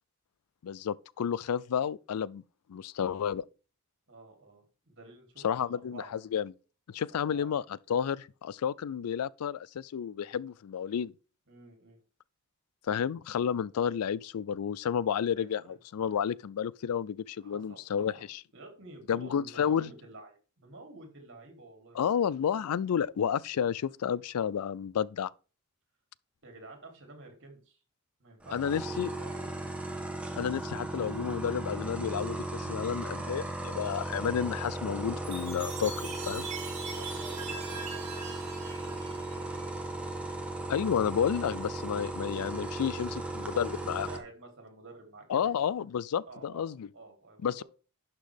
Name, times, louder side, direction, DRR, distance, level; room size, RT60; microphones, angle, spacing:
voice 1, 0.6-2.4 2.7-3.4 5.4-6.5 6.9-7.6 7.9-11.1 12.9-18.4 19.1-19.9 21.9-25.3 28.5-29.1 30.4-36.5 40.7-44.1 45.3-46.9 47.4-47.6, left 8 dB, 85° left, 0.4 m, -31 dB
voice 2, 4.1-6.1 7.3-7.6 11.5-12.0 15.3-15.8 17.4-18.2 18.5-22.2 26.4-27.8 28.2-29.7 36.9-39.9 43.5-45.5 46.3-47.6, right 2 dB, 55° right, 3.0 m, -51 dB
sound 1, 28.4-44.2, right 2 dB, 5° right, 1.1 m, -37 dB
Chime, 35.2-39.8, right 5 dB, 30° right, 3.2 m, -42 dB
11.5 x 6.0 x 3.4 m
head